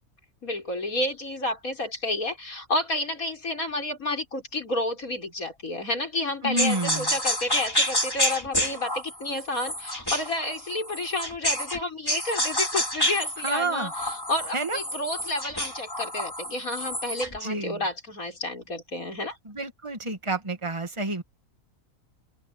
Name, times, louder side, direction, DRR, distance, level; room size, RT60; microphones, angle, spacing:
voice 1, 0.4-19.4, left 2 dB, 90° left, 6.0 m, -30 dB
voice 2, 6.4-7.1 13.4-13.9 14.5-14.8 17.4-17.8 19.5-21.2, right 2 dB, 20° right, 2.1 m, -29 dB
sound 1, 6.6-11.8 12.1-17.4, left 1 dB, 15° left, 5.0 m, -29 dB
open air
omnidirectional pair, 1.4 m